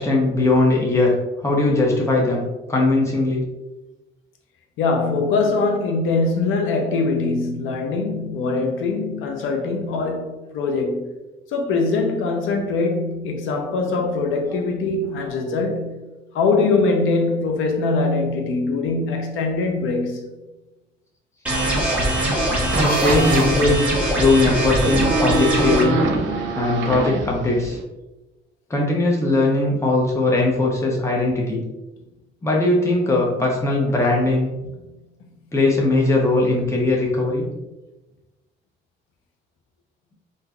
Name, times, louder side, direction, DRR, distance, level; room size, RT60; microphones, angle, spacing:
voice 1, 0.0-3.4 22.7-23.9 24.2-26.0 26.5-27.8 28.7-31.6 32.4-34.5 35.5-37.5, left 2 dB, 15° left, 0.8 m, -20 dB
voice 2, 4.8-11.1 11.5-15.9 16.3-20.3, left 3 dB, 90° left, 0.6 m, -22 dB
sound 1, 21.5-25.9, right 1 dB, 5° right, 1.1 m, -21 dB
sound 2, 22.7-23.6 24.7-27.8, right 2 dB, 75° right, 0.6 m, -24 dB
3.8 x 2.6 x 2.3 m
cardioid pair, 90°, 20 cm